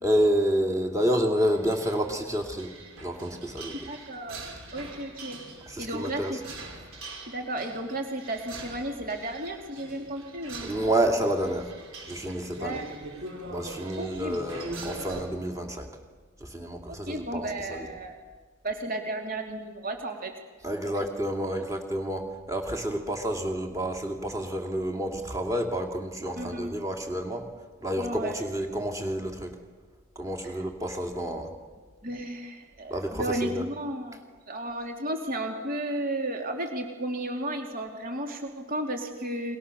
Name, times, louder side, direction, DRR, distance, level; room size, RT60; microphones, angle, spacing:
voice 1, 0.0-2.7 3.0-3.8 5.7-6.3 10.6-11.7 12.1-12.8 13.5-15.9 16.4-17.9 20.6-27.4 27.8-29.5 30.1-31.5 32.9-33.6, equal, 15° right, 3 dB, 3.0 m, -29 dB
sound 1, 1.4-15.2, right 2 dB, 70° right, 5.1 m, -43 dB
voice 2, 3.7-4.4 4.7-5.4 5.8-6.4 7.3-10.8 12.6-12.9 14.0-14.4 16.9-18.2 18.6-20.3 26.4-26.7 27.9-28.3 30.4-30.6 32.0-39.6, right 1 dB, 40° right, 3 dB, 2.9 m, -33 dB
30.0 x 23.0 x 7.0 m, 1.4 s
head